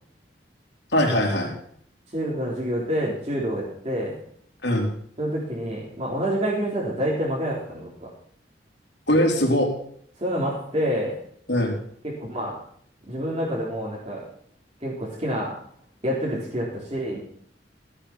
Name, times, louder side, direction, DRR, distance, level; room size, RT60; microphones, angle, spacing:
voice 1, 0.9-1.5 4.6-4.9 9.1-9.7 11.5-11.8, left 1 dB, 70° left, -1 dB, 4.1 m, -21 dB
voice 2, 2.1-4.1 5.2-8.1 10.2-11.2 12.2-12.5 13.1-14.2 14.8-15.5 16.0-17.2, equal, 35° right, -6 dB, 3.8 m, -27 dB
15.5 x 8.2 x 7.3 m, 0.62 s
head